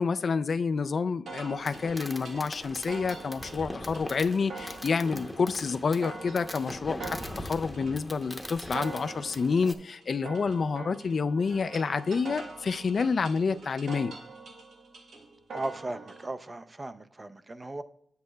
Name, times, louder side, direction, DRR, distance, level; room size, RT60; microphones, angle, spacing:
voice 1, 0.0-14.1, left 5 dB, 60° left, 0.3 m, -28 dB
sound 1, 1.3-16.3, right 3 dB, 80° right, 1.1 m, -44 dB
Fireworks, 1.6-9.7, left 1 dB, 5° left, 0.8 m, -41 dB
voice 2, 15.5-17.8, right 2 dB, 30° right, 0.5 m, -37 dB
9.4 x 8.0 x 2.2 m
cardioid pair, 65°, 0 cm